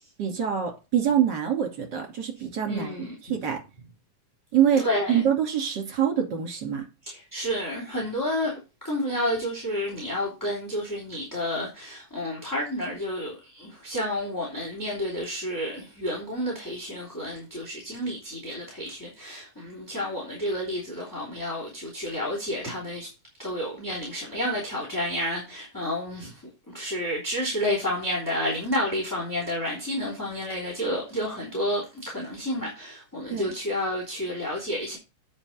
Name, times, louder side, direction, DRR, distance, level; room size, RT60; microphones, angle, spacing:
voice 1, 0.2-2.9 3.2-3.6 4.5-6.8 33.3-33.5, right 9 dB, 35° right, 3.1 m, -25 dB
voice 2, 2.7-3.1 4.8-5.2 7.0-8.6 8.8-23.1 23.4-26.3 26.7-35.0, left 1 dB, 5° left, 2.7 m, -30 dB
9.0 x 5.5 x 5.2 m
omnidirectional pair, 3.8 m